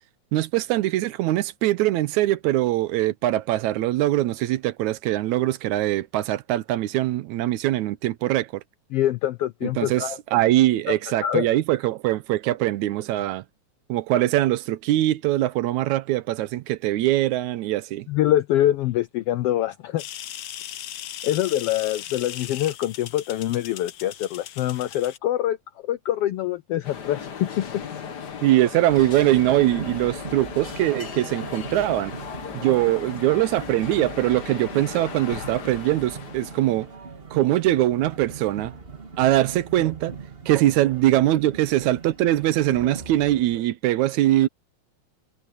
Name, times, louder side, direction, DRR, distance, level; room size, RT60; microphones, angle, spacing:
voice 1, 0.3-8.6 9.6-13.4 13.9-18.1 28.4-32.1 32.5-36.9 37.3-38.7 39.2-40.1 40.5-44.5, right 15 dB, 80° right, 2.2 m, -22 dB
voice 2, 8.9-10.2 10.9-11.0 11.2-11.5 18.1-20.0 21.2-25.6 25.8-27.8, left 13 dB, 80° left, 1.3 m, -24 dB
sound 1, 20.0-25.2, left 11 dB, 65° left, 1.5 m, -38 dB
sound 2, 26.8-36.9, left 7 dB, 45° left, 1.6 m, -37 dB
sound 3, 28.9-43.6, right 5 dB, 25° right, 1.4 m, -40 dB
omnidirectional pair, 3.3 m